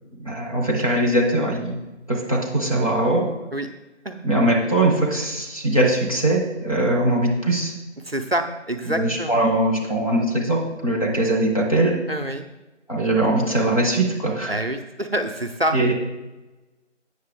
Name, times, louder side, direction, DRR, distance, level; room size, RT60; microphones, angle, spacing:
voice 1, 0.2-1.8 2.1-3.3 4.2-7.7 8.8-12.0 12.9-14.5 15.7-15.9, right 1 dB, 30° left, -3 dB, 1.1 m, -21 dB
voice 2, 8.0-9.4 12.1-12.5 14.5-15.8, right 1 dB, 55° right, 6 dB, 0.5 m, -26 dB
8.3 x 6.5 x 3.4 m, 1.1 s
figure-of-eight pair, 170°, 37 cm